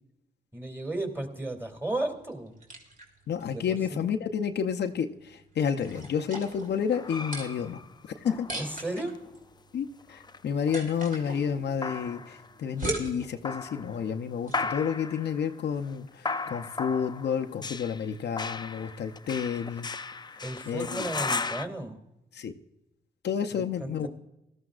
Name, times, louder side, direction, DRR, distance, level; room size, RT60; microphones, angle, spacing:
voice 1, 0.5-2.5 3.5-4.0 8.6-9.1 20.4-22.0 23.5-24.1, right 2 dB, 15° right, 4 dB, 2.4 m, -34 dB
sound 1, 1.9-14.7, right 2 dB, 50° right, 2.8 m, -42 dB
voice 2, 3.3-7.8 8.2-8.5 9.7-19.9 20.7-21.1 22.3-22.5 23.2-24.1, left 7 dB, 75° left, 5 dB, 0.6 m, -30 dB
sound 2, 5.9-9.4 10.0-12.6 13.2-14.1 14.5-21.6, left 4 dB, 25° left, 0.4 m, -37 dB
17.5 x 13.0 x 2.4 m, 0.89 s
cardioid pair, 65°, 18 cm